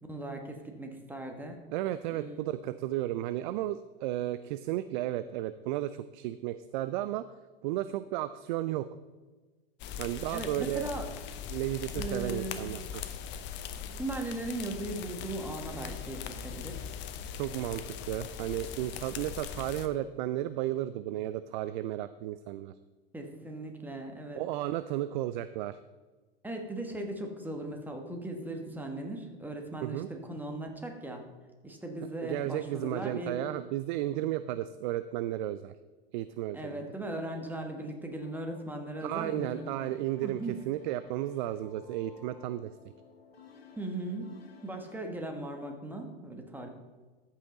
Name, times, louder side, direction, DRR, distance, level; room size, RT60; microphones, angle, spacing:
voice 1, 0.0-1.6 2.1-2.4 10.3-11.0 11.9-12.6 14.0-16.9 23.1-24.4 26.4-31.2 31.6-33.4 36.5-39.8 40.2-40.5 43.8-44.3 44.6-46.7, right 1 dB, 5° right, 3 dB, 1.4 m, -38 dB
voice 2, 1.7-7.3 7.6-8.9 10.0-10.9 11.5-13.0 17.4-22.7 24.4-25.8 29.8-30.1 32.2-35.7 36.1-36.8 39.0-42.7, right 13 dB, 55° right, 14 dB, 0.4 m, -33 dB
sound 1, 9.8-19.9, left 8 dB, 40° left, 0.8 m, -40 dB
sound 2, 38.2-45.0, left 5 dB, 90° left, 1.6 m, -56 dB
13.5 x 5.6 x 3.9 m, 1.3 s
hypercardioid pair, 100°, 30 cm